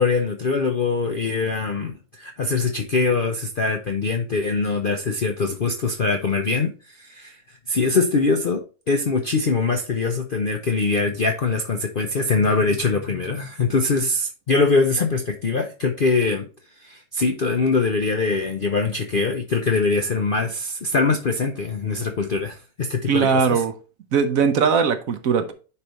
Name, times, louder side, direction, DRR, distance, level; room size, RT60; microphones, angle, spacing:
voice 1, 0.0-7.4 7.7-8.6 8.9-16.5 16.8-23.6, left 4 dB, 55° left, 0.6 m, -23 dB
voice 2, 23.1-23.7 24.1-25.5, right 6 dB, 60° right, 1.1 m, -19 dB
9.8 x 3.4 x 4.0 m
omnidirectional pair, 1.8 m